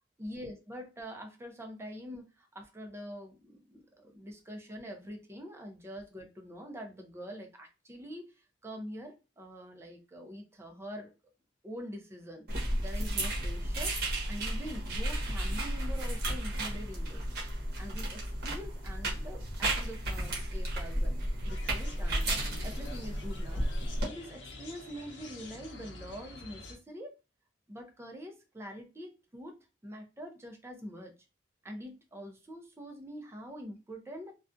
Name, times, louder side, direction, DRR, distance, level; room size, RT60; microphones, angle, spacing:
voice 1, 0.2-11.1 11.6-12.5 12.8-14.0 14.3-17.2 17.8-21.1 21.5-23.6 24.0-27.1 27.7-31.2 31.6-34.3, equal, 15° right, 0.4 m, -45 dB
sound 1, 12.5-24.1, right 1 dB, 55° right, 0.9 m, -33 dB
sound 2, 21.5-26.8, left 2 dB, 80° left, 0.7 m, -48 dB
2.4 x 2.2 x 2.4 m
head